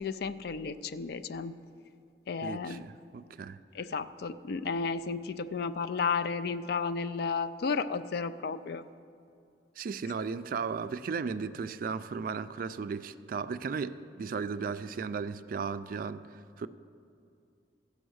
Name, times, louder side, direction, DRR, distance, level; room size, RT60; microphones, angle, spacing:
voice 1, 0.0-1.5 2.3-2.8 3.7-8.8, left 5 dB, 60° left, 12 dB, 0.4 m, -33 dB
voice 2, 2.4-3.6 9.8-16.7, right 5 dB, 50° right, 13 dB, 0.3 m, -35 dB
15.5 x 5.4 x 6.3 m, 2.4 s
head